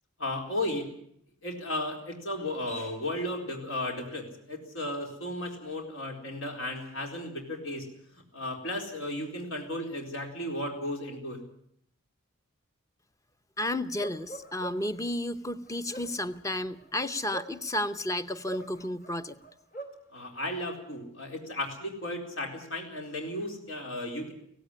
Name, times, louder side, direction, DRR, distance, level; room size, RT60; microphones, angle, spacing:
voice 1, 0.2-0.9 1.4-7.9 8.3-11.4 20.1-24.3, left 1 dB, 70° left, 2 dB, 4.2 m, -34 dB
voice 2, 13.6-19.4, left 1 dB, 15° left, 11 dB, 0.8 m, -32 dB
Bark, 14.0-15.0 15.7-18.0 18.5-20.0, right 2 dB, 40° left, 3.6 m, -43 dB
17.0 x 16.5 x 9.9 m, 0.69 s
head